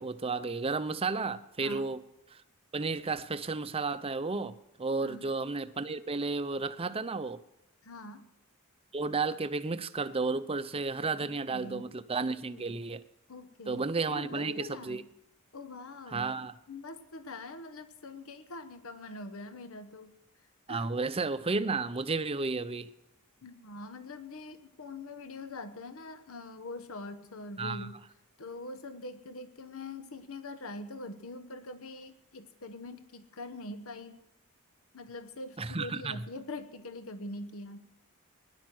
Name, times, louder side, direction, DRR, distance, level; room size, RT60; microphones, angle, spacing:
voice 1, 0.0-2.0 2.3-2.4 2.7-7.4 8.9-13.0 13.7-15.0 16.1-16.5 20.7-22.9 27.6-27.9 35.6-36.2, right 3 dB, 25° right, 13 dB, 0.6 m, -32 dB
voice 2, 1.6-1.9 5.0-5.3 7.8-8.3 11.2-12.0 12.5-12.8 13.3-15.1 15.5-16.4 16.7-20.1 20.7-20.9 23.4-28.0 28.4-34.2 34.9-37.9, left 2 dB, 70° left, 11 dB, 1.1 m, -44 dB
18.0 x 11.0 x 6.1 m, 0.83 s
head